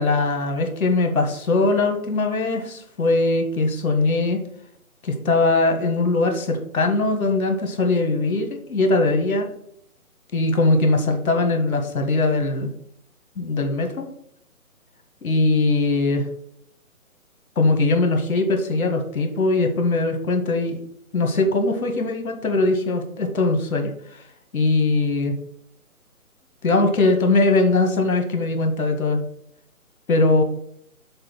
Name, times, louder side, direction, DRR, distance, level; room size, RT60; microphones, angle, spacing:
voice 1, 0.0-4.4 5.0-9.5 10.3-12.7 13.4-14.1 15.2-16.2 17.5-20.8 21.1-24.2 24.5-25.3 26.6-29.2 30.1-30.4, left 2 dB, 70° left, 5 dB, 1.7 m, -21 dB
6.7 x 3.8 x 6.0 m, 0.68 s
hypercardioid pair, 160°, 43 cm